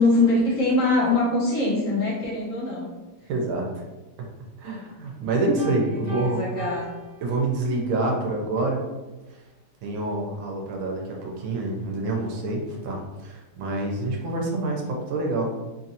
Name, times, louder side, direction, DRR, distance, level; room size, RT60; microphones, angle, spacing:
voice 1, 0.0-2.9 5.9-6.9, left 2 dB, 65° left, -5 dB, 0.8 m, -23 dB
voice 2, 3.3-3.7 4.6-6.5 7.2-8.8 9.8-15.5, right 2 dB, 85° right, 0 dB, 1.5 m, -27 dB
Piano, 5.6-8.0, left 3 dB, 55° right, 1.5 m, -39 dB
3.7 x 2.5 x 2.7 m, 1.1 s
omnidirectional pair, 2.2 m